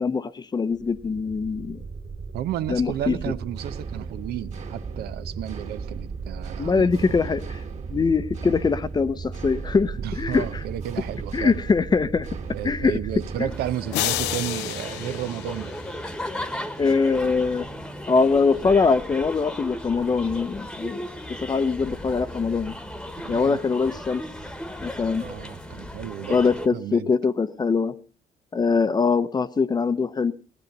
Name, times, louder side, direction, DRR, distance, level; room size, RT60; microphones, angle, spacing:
voice 1, 0.0-1.8 2.7-3.2 6.6-7.6 7.9-10.6 11.3-12.3 12.6-13.0 13.4-13.5 16.8-17.7 18.1-22.7 23.3-24.3 24.8-25.2 26.3-27.9 28.5-30.3, left 4 dB, 25° left, 0.7 m, -23 dB
sound 1, 0.7-13.7, right 5 dB, 45° right, 2.2 m, -35 dB
voice 2, 2.3-6.9 10.0-11.6 12.5-15.7 23.2-23.6 25.2-26.4 26.7-27.1, right 12 dB, 70° right, 0.7 m, -32 dB
sound 2, 13.5-26.7, equal, 5° left, 1.3 m, -36 dB
sound 3, 13.9-16.3, left 15 dB, 90° left, 0.7 m, -30 dB
18.0 x 10.5 x 5.3 m
cardioid pair, 110°, 17 cm